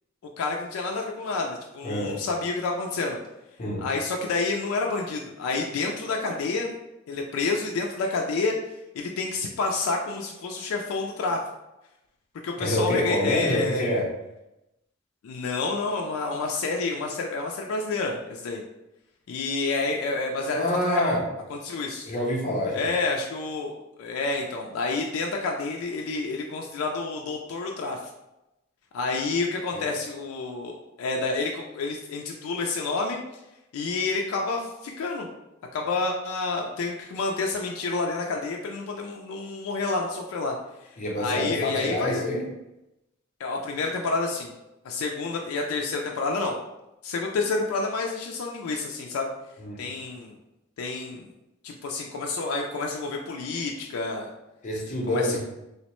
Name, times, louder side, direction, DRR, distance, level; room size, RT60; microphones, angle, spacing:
voice 1, 0.4-3.2 3.8-6.7 7.1-8.6 8.9-11.4 12.4-13.9 15.2-18.6 19.3-21.1 21.5-22.1 22.7-23.7 24.0-28.0 28.9-33.2 33.7-35.3 35.7-40.5 41.2-42.2 43.4-44.5 44.8-46.6 47.0-49.3 49.8-50.4 50.8-51.3 51.6-54.3 55.1-55.4, left 3 dB, 85° left, 1 dB, 0.3 m, -29 dB
voice 2, 1.8-2.2 3.6-3.9 12.6-14.1 20.5-21.2 22.0-22.9 29.7-29.9 41.0-42.5 49.6-49.8 54.6-55.4, left 1 dB, 35° left, -2 dB, 0.6 m, -26 dB
2.9 x 2.0 x 2.9 m, 0.93 s
head